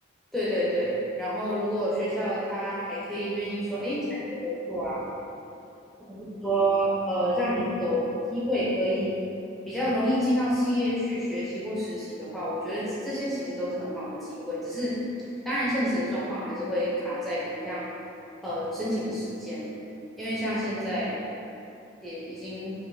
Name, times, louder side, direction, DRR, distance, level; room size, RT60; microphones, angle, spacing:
voice 1, 0.3-5.1 6.1-9.2 9.7-15.0 15.4-17.9 18.4-19.7 20.2-21.3 22.0-22.7, equal, ahead, -10 dB, 0.4 m, -28 dB
3.8 x 2.5 x 2.6 m, 2.7 s
head